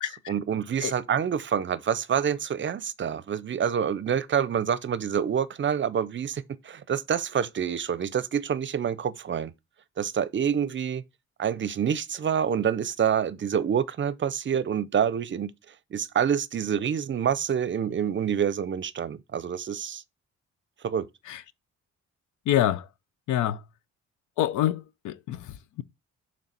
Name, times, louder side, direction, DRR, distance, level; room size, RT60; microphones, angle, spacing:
voice 1, 0.3-9.5 10.0-11.0 11.4-15.5 15.9-20.0 20.8-21.1, right 8 dB, 40° right, 0.6 m, -27 dB
voice 2, 22.5-22.8 23.3-23.6 24.4-25.4, left 12 dB, 80° left, 0.6 m, -25 dB
6.6 x 3.2 x 5.8 m
cardioid pair, 90°, 30 cm